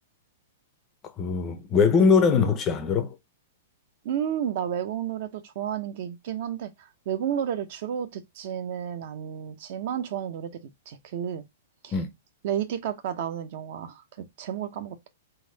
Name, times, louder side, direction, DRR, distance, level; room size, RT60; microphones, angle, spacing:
voice 1, 1.2-3.1 11.9-12.1, left 5 dB, 20° left, 0.6 m, -21 dB
voice 2, 4.0-10.5 10.9-11.4 11.8-12.0 12.4-15.1, right 9 dB, 50° right, 0.7 m, -32 dB
3.9 x 2.6 x 3.9 m
hypercardioid pair, 160°, 0 cm